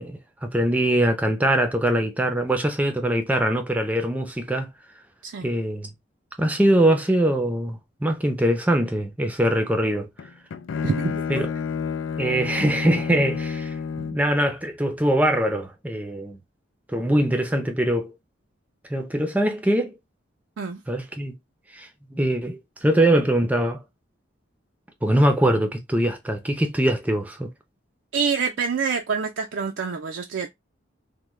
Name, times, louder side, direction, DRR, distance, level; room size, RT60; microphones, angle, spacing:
voice 1, 0.0-4.7 5.4-5.9 6.4-10.1 11.3-11.5 12.2-13.7 14.1-16.4 16.9-18.1 18.9-19.9 20.9-21.3 21.7-23.8 25.0-27.5, right 1 dB, 10° right, 0.5 m, -22 dB
Bowed string instrument, 10.2-14.3, left 6 dB, 80° left, 0.3 m, -30 dB
voice 2, 10.8-11.2 20.6-20.8 28.1-30.5, right 5 dB, 70° right, 0.4 m, -26 dB
3.5 x 2.2 x 3.1 m
head